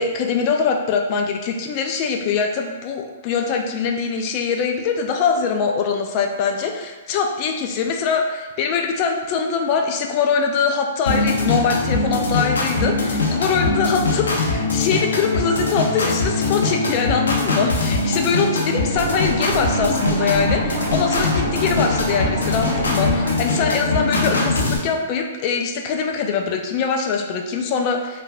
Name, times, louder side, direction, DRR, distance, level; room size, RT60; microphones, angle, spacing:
voice 1, 0.0-28.2, left 5 dB, 40° left, 3 dB, 0.3 m, -22 dB
sound 1, 11.1-24.8, left 3 dB, 85° left, 0.6 m, -22 dB
sound 2, 18.9-23.3, right 4 dB, 65° right, 0.6 m, -28 dB
3.3 x 2.2 x 2.4 m, 1.2 s
hypercardioid pair, 135°, 0 cm